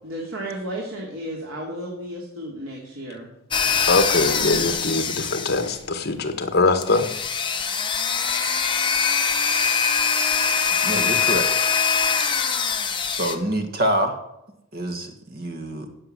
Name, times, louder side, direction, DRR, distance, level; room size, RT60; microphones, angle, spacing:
voice 1, 0.0-3.3, right 1 dB, 85° right, -2 dB, 2.6 m, -33 dB
sound 1, 3.5-5.9 6.8-13.4, left 6 dB, 25° left, 1.0 m, -23 dB
voice 2, 3.9-7.1, left 3 dB, 50° left, 8 dB, 1.5 m, -22 dB
voice 3, 10.8-11.5 13.1-14.2 14.7-15.9, right 1 dB, 50° right, 6 dB, 2.1 m, -26 dB
17.0 x 6.6 x 7.9 m, 0.86 s
head